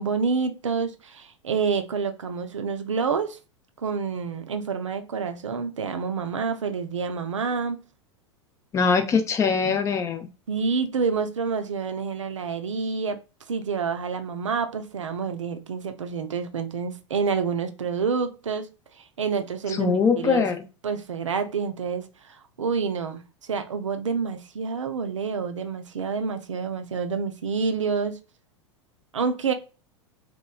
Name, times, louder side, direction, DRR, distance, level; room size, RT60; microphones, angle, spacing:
voice 1, 0.0-3.4 3.8-7.8 10.5-13.2 13.5-18.7 19.2-20.4 20.8-23.2 23.5-28.1 29.1-29.5, right 5 dB, 75° right, 0.4 m, -28 dB
voice 2, 8.7-10.3 19.7-20.6, left 5 dB, 20° left, 0.3 m, -22 dB
2.9 x 2.1 x 2.2 m
figure-of-eight pair, 90°, 16 cm